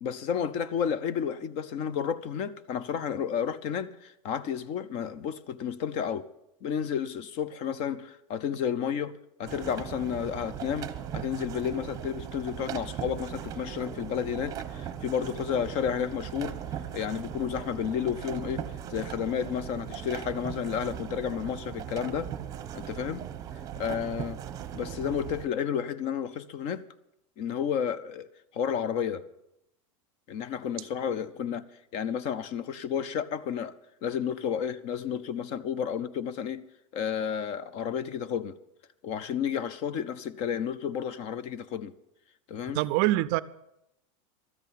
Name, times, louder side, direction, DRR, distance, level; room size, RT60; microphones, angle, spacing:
voice 1, 0.0-6.3 6.6-16.6 16.9-18.6 18.9-22.3 22.7-23.3 23.8-24.4 24.7-26.9 27.4-28.3 28.5-29.2 30.3-31.6 31.9-33.8 34.0-36.6 36.9-38.6 39.0-41.9 42.5-42.8, left 8 dB, 35° left, 0.6 m, -31 dB
sound 1, 9.4-25.4, right 10 dB, 20° right, 0.9 m, -38 dB
voice 2, 42.7-43.4, right 17 dB, 45° right, 0.4 m, -24 dB
13.0 x 8.2 x 9.0 m
supercardioid pair, 160°, 17 cm